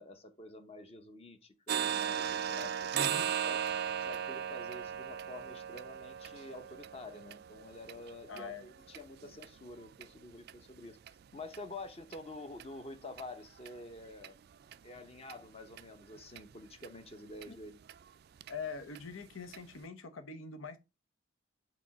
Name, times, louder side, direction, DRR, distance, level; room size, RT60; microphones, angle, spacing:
voice 1, 0.0-3.6 4.0-14.4 14.8-17.8, left 2 dB, 30° left, 0.9 m, -48 dB
sound 1, 1.7-9.5 9.9-10.1 10.5-10.6 11.1-11.2 11.5-11.6 12.1-12.2 12.6-12.7 13.2-13.3 13.7-13.8 14.2-14.3 14.7-14.8 15.3-15.4 15.8-15.9 16.4-16.5 16.8-16.9 17.4-17.5 17.9-18.0 18.4-18.5 19.0-19.1 19.5-19.6, right 8 dB, 50° right, 0.3 m, -37 dB
voice 2, 2.9-3.3 8.3-8.6 17.5-17.6 18.5-20.8, left 4 dB, 90° left, 0.9 m, -43 dB
5.0 x 4.1 x 5.9 m
head